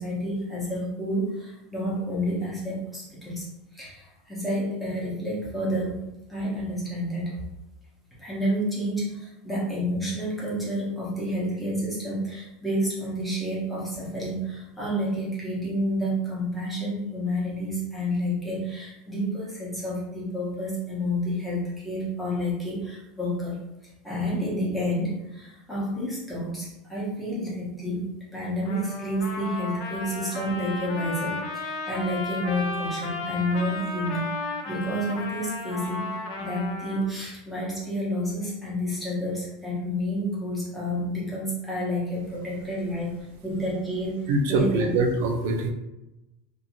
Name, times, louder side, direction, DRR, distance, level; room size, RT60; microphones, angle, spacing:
voice 1, 0.0-3.5 3.7-6.0 6.3-7.4 8.2-23.6 24.0-28.1 28.3-34.3 34.7-43.1 43.4-44.2 44.5-44.9, equal, 5° left, -7 dB, 0.8 m, -29 dB
Trumpet, 28.6-37.1, left 3 dB, 45° left, 0.4 m, -34 dB
voice 2, 44.3-45.7, right 2 dB, 60° right, 3 dB, 0.5 m, -23 dB
2.6 x 2.5 x 2.9 m, 0.95 s
supercardioid pair, 175°, 0 cm